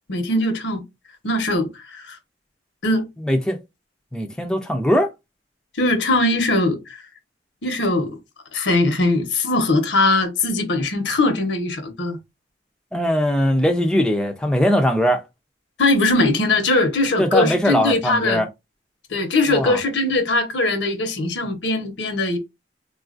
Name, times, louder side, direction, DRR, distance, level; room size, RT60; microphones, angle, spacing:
voice 1, 0.1-0.8 1.2-2.2 2.8-3.1 5.8-7.0 7.6-8.1 8.5-12.2 15.8-18.4 19.1-22.4, left 2 dB, 80° left, 0.9 m, -20 dB
voice 2, 3.2-3.6 4.1-5.1 12.9-15.2 17.2-18.5 19.5-19.8, equal, 5° left, 0.4 m, -20 dB
3.8 x 2.4 x 2.5 m
head